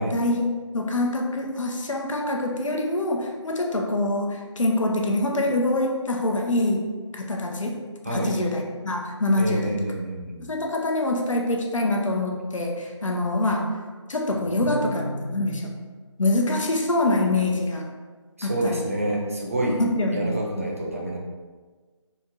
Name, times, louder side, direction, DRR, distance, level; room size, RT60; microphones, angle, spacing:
voice 1, 0.1-9.7 10.4-13.7 14.1-15.7 16.2-17.9 18.4-18.8 19.8-20.3, left 2 dB, 85° left, 1 dB, 0.9 m, -25 dB
voice 2, 9.4-10.5 14.5-15.6 18.4-19.8 20.1-21.2, right 1 dB, 30° right, -2 dB, 0.6 m, -28 dB
4.3 x 2.4 x 4.3 m, 1.4 s
figure-of-eight pair, 175°, 16 cm